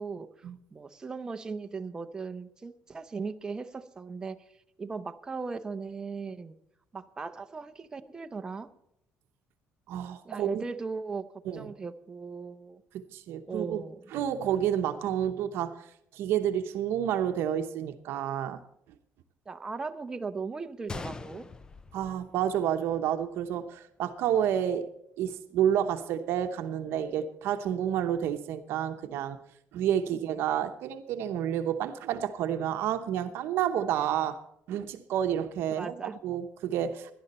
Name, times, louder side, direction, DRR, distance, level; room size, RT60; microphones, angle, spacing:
voice 1, 0.0-4.4 4.8-6.6 6.9-8.7 10.2-11.2 11.5-12.8 13.5-14.0 19.5-21.5 30.1-30.2 35.7-36.2, right 4 dB, 15° right, 0.7 m, -38 dB
voice 2, 9.9-10.6 11.5-11.7 12.9-13.8 14.1-18.6 21.9-24.9 25.2-29.4 29.7-34.4 34.7-35.9 36.2-37.1, right 10 dB, 65° right, 0.9 m, -30 dB
Gunshot gunfire, 20.9-22.9 23.2-23.3 24.0-24.2, left 4 dB, 15° left, 0.4 m, -42 dB
17.5 x 11.5 x 4.2 m
cardioid pair, 160°, 4 cm